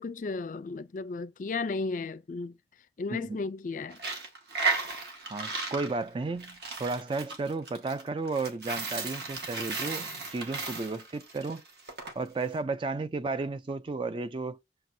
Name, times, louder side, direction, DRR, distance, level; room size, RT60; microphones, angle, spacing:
voice 1, 0.0-2.6 3.0-4.0, left 3 dB, 45° left, 0.4 m, -34 dB
Coin (dropping), 3.9-12.1, right 4 dB, 65° right, 1.3 m, -35 dB
voice 2, 5.2-11.6 12.2-14.6, right 3 dB, 30° right, 0.3 m, -33 dB
7.6 x 5.8 x 2.7 m
head